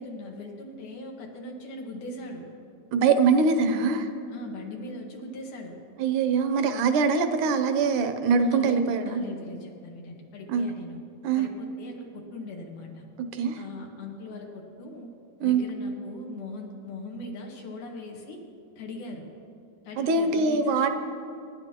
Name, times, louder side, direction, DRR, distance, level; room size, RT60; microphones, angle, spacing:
voice 1, 0.0-2.5 4.3-5.7 8.4-11.0 11.4-13.1 13.6-15.1 15.4-18.4 18.8-19.2 19.8-20.9, left 2 dB, 80° left, 0 dB, 3.2 m, -40 dB
voice 2, 2.9-4.1 6.0-9.2 10.5-10.7 11.2-11.5 13.3-13.6 15.4-15.6 20.0-20.9, right 5 dB, 80° right, 8 dB, 2.2 m, -23 dB
25.5 x 11.5 x 3.0 m, 2.5 s
omnidirectional pair, 3.6 m